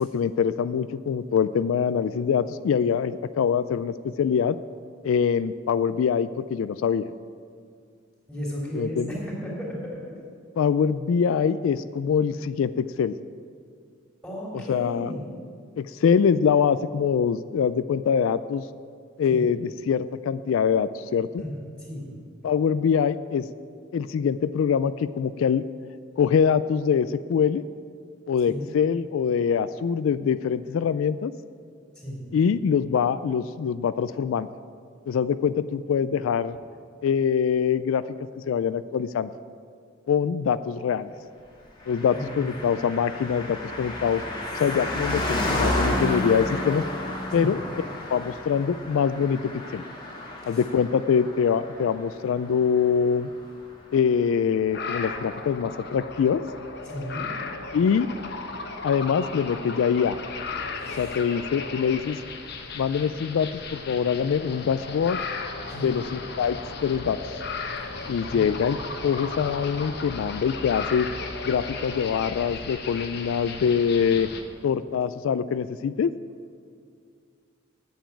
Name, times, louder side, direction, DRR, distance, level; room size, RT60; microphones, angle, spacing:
voice 1, 0.0-4.6 5.0-7.1 8.7-9.1 10.6-13.1 14.5-15.1 15.8-18.6 19.2-21.4 22.4-23.4 23.9-25.6 26.2-27.6 28.3-31.3 32.3-34.5 35.1-36.6 37.0-38.0 38.5-39.3 40.1-41.1 41.9-44.2 44.6-46.8 47.3-47.6 48.1-49.4 49.7-49.8 50.5-53.3 53.9-56.4 57.7-58.1 58.8-60.2 60.9-62.2 62.7-65.2 65.7-67.3 68.1-68.8 69.0-71.1 71.4-74.3 74.6-76.1, left 7 dB, 90° left, 14 dB, 0.3 m, -24 dB
voice 2, 8.3-10.0 14.2-15.2 19.3-19.5 21.4-21.5 21.8-22.1 28.4-28.6 31.9-32.2 42.1-42.8 46.3-46.4 47.3-47.5 50.4-50.6 56.8-57.3 60.8-61.1 65.7-65.9 68.3-68.4, equal, 5° left, -5 dB, 3.2 m, -34 dB
Car passing by, 41.8-53.7 53.9-54.0, left 1 dB, 25° left, 1.5 m, -31 dB
sound 1, 54.7-74.4, left 4 dB, 55° left, 1.0 m, -35 dB
8.9 x 7.3 x 8.5 m, 2.2 s
head